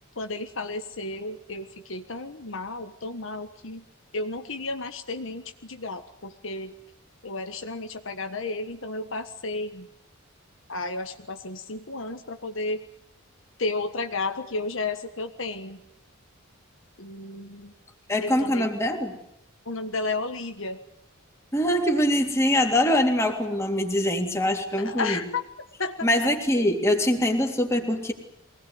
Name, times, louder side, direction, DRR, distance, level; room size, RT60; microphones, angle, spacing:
voice 1, 0.2-3.8 4.1-6.7 7.2-9.9 10.7-12.8 13.6-15.8 17.0-17.7 18.2-18.7 19.6-20.8 24.8-25.4 25.8-26.3, left 3 dB, 60° left, 6 dB, 1.5 m, -32 dB
voice 2, 18.1-19.1 21.5-25.2 26.0-28.1, left 1 dB, 15° left, 2 dB, 3.3 m, -23 dB
24.5 x 19.0 x 9.5 m, 0.80 s
head